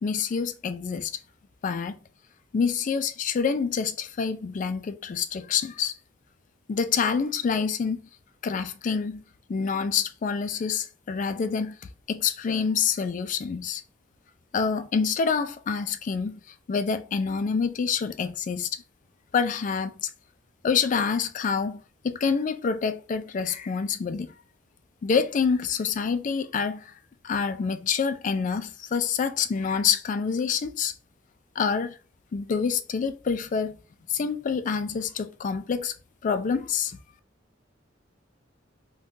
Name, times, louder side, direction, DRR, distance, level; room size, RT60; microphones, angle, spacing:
voice 1, 0.0-1.1 1.6-2.0 2.5-6.0 6.7-8.0 8.4-9.2 9.5-11.8 12.1-13.8 14.5-18.7 19.3-20.1 20.6-24.3 25.0-26.9 27.2-30.9 31.6-32.0 32.3-33.8 34.1-35.9 36.2-37.0, left 6 dB, 40° left, 0.3 m, -27 dB
2.6 x 2.3 x 3.6 m
head